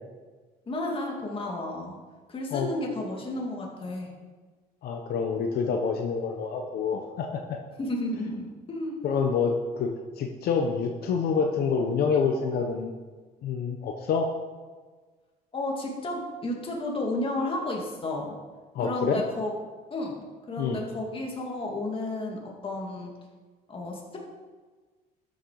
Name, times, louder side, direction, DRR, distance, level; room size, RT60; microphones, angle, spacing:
voice 1, 0.7-2.0 2.3-4.1 7.8-9.0 15.5-18.4 18.8-19.5 19.9-23.1 23.7-24.2, left 2 dB, 30° left, -1 dB, 2.5 m, -32 dB
voice 2, 4.8-7.6 9.0-12.9 13.4-14.3 18.7-19.2 20.6-20.8, left 5 dB, 65° left, 3 dB, 1.0 m, -27 dB
12.5 x 6.7 x 4.8 m, 1.4 s
cardioid pair, 110°, 17 cm